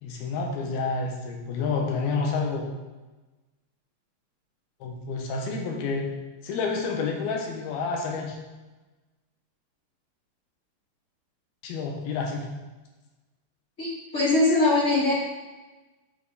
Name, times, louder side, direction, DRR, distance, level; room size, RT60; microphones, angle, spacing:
voice 1, 0.0-2.6 4.8-6.0 6.4-8.4 11.6-12.4, left 4 dB, 70° left, 1 dB, 2.9 m, -29 dB
voice 2, 13.8-15.1, left 2 dB, 25° left, -8 dB, 1.6 m, -22 dB
8.4 x 6.3 x 4.9 m, 1.2 s
omnidirectional pair, 5.0 m